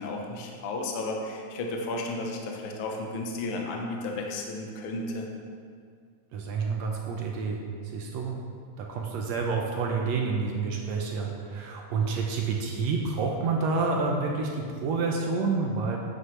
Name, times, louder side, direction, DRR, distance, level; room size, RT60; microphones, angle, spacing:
voice 1, 0.0-5.3, left 2 dB, 60° left, 1 dB, 1.5 m, -33 dB
voice 2, 6.3-8.4 8.8-16.0, right 4 dB, 75° right, 0 dB, 1.9 m, -29 dB
9.6 x 7.9 x 3.2 m, 2.1 s
omnidirectional pair, 3.3 m